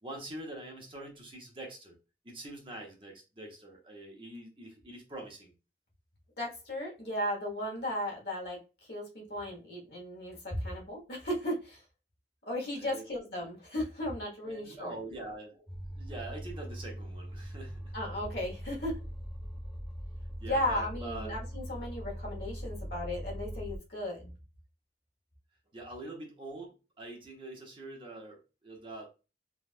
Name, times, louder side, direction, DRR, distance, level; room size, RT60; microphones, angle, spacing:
voice 1, 0.0-2.0 2.2-5.5 12.8-13.0 14.4-15.6 15.9-17.9 20.4-21.4 25.7-29.1, right 2 dB, 30° right, 0 dB, 0.7 m, -44 dB
voice 2, 6.4-8.6 8.9-11.8 12.5-15.0 17.9-19.0 20.5-24.3, left 1 dB, 65° left, -2 dB, 1.2 m, -35 dB
sound 1, 15.7-23.8, equal, 5° right, 0.3 m, -41 dB
3.3 x 2.3 x 2.4 m, 0.31 s
head